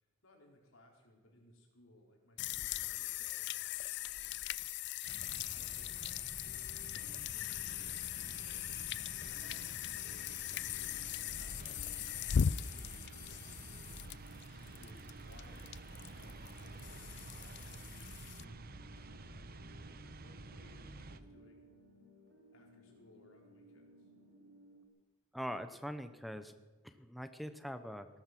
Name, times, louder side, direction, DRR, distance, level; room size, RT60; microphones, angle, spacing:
voice 1, 0.0-3.7 4.0-4.4 5.3-14.1 14.6-15.7 16.1-18.6 19.0-21.7 22.5-24.1, left 1 dB, 85° left, 0 dB, 4.4 m, -64 dB
sound 1, 2.4-18.4, left 9 dB, 60° left, 0.4 m, -39 dB
sound 2, 5.1-21.2, right 2 dB, 50° right, 0.9 m, -50 dB
sound 3, 6.4-24.9, equal, 80° right, 3.5 m, -61 dB
voice 2, 25.3-26.5 26.8-28.1, equal, ahead, 9 dB, 0.8 m, -43 dB
18.0 x 12.5 x 6.1 m, 1.3 s
head